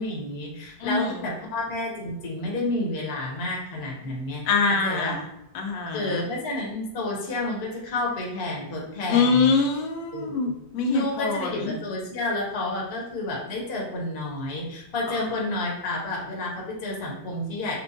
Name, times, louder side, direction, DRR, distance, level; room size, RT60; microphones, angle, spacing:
voice 1, 0.0-4.5 4.8-5.1 5.9-9.5 10.1-10.5 10.9-17.7, left 2 dB, 45° left, -3 dB, 0.9 m, -30 dB
voice 2, 0.8-1.1 4.5-5.2 5.5-6.2 9.1-11.7 15.2-15.3, left 4 dB, 85° left, 2 dB, 1.4 m, -24 dB
5.9 x 2.2 x 2.7 m, 0.81 s
omnidirectional pair, 2.0 m